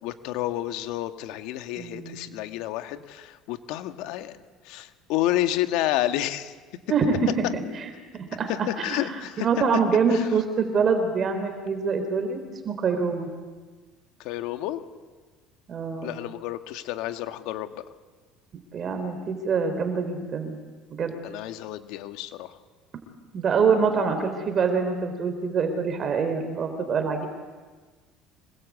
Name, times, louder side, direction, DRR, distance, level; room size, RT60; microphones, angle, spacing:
voice 1, 0.0-4.3 4.6-6.5 8.5-9.5 10.1-10.3 14.2-14.8 16.0-17.8 21.2-22.6, left 14 dB, 75° left, 8 dB, 1.8 m, -30 dB
voice 2, 1.8-2.2 6.9-7.3 8.1-8.5 8.9-9.0 9.4-13.3 15.7-16.1 18.7-20.6 20.9-21.2 23.3-27.3, right 5 dB, 35° right, 7 dB, 3.7 m, -25 dB
26.0 x 21.0 x 8.6 m, 1.4 s
cardioid pair, 125°, 0 cm